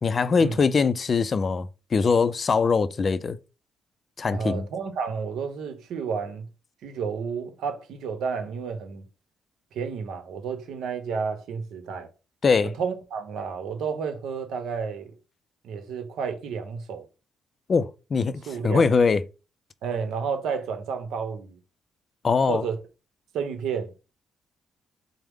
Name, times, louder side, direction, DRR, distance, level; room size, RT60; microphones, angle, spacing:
voice 1, 0.0-3.4 4.2-4.6 12.4-12.7 17.7-19.2 22.2-22.6, left 5 dB, 40° left, 0.3 m, -22 dB
voice 2, 4.3-6.5 6.8-9.1 9.7-12.1 12.6-15.2 15.6-17.1 18.5-18.9 19.8-21.6 22.5-22.8 23.3-23.9, right 6 dB, 80° right, 0.8 m, -31 dB
4.7 x 2.0 x 3.5 m
cardioid pair, 90°, 0 cm